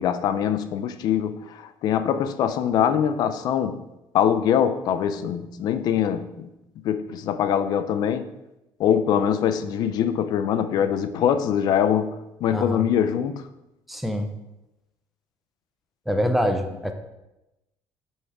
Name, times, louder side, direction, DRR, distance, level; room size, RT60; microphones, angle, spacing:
voice 1, 0.0-3.8 4.1-6.5 6.8-8.3 8.8-13.5, left 9 dB, 50° left, 0.5 m, -23 dB
voice 2, 12.5-12.8 13.9-14.3 16.1-16.9, equal, ahead, 0.5 m, -25 dB
5.7 x 5.5 x 4.8 m
cardioid pair, 170°, 9 cm